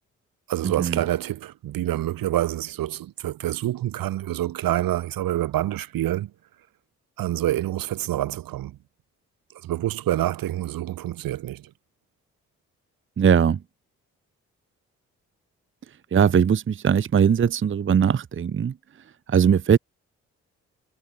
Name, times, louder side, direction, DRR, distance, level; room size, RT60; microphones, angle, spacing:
voice 1, 0.5-6.3 7.2-8.8 9.6-11.7, right 13 dB, 75° right, 1.9 m, -27 dB
voice 2, 13.2-13.6 16.1-18.7 19.3-19.8, right 7 dB, 35° right, 0.7 m, -20 dB
hypercardioid pair, 45°, 35 cm